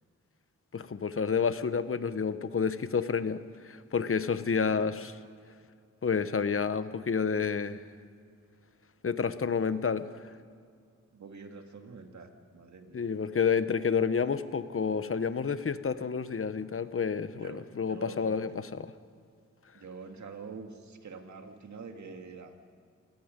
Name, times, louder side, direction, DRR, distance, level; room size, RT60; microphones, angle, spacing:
voice 1, 0.7-5.2 6.0-7.8 9.0-10.3 12.9-18.9, left 6 dB, 50° left, 12 dB, 1.2 m, -30 dB
voice 2, 11.1-13.0 17.4-18.6 19.7-22.6, right 4 dB, 75° right, 5 dB, 2.3 m, -46 dB
28.0 x 17.5 x 5.3 m, 2.2 s
cardioid pair, 60°, 29 cm